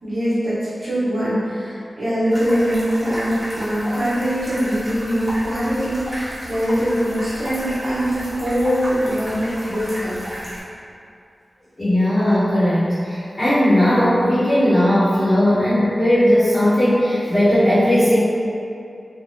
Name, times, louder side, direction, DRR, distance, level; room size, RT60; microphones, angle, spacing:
voice 1, 0.0-10.2, equal, 50° right, -12 dB, 1.3 m, -22 dB
Nolde Forest - Small Stream, 2.3-10.6, equal, 15° right, 1.0 m, -33 dB
voice 2, 11.8-18.2, equal, 30° left, -16 dB, 0.9 m, -17 dB
3.2 x 2.2 x 2.6 m, 2.5 s
wide cardioid pair, 115°, 0 cm